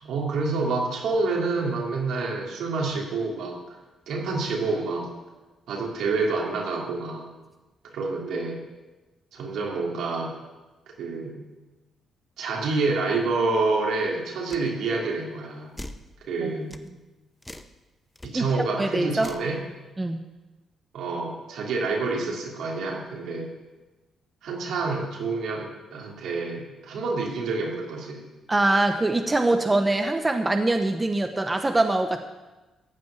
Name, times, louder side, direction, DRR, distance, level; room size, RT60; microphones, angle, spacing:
voice 1, 0.0-3.8 4.1-5.1 5.7-7.3 7.8-8.6 9.3-10.4 11.0-11.5 12.4-15.7 16.2-16.9 18.2-19.6 20.9-23.5 24.4-28.3, right 3 dB, 75° right, -1 dB, 3.0 m, -28 dB
sound 1, 14.5-14.7 15.8-16.1 16.7-16.9 17.4-17.7 18.2-18.3 19.2-19.5, left 1 dB, 10° left, 0.8 m, -40 dB
voice 2, 18.8-19.3 20.0-20.2 28.5-32.3, right 2 dB, 20° right, 6 dB, 0.9 m, -23 dB
15.0 x 5.3 x 9.0 m, 1.1 s
cardioid pair, 90°, 0 cm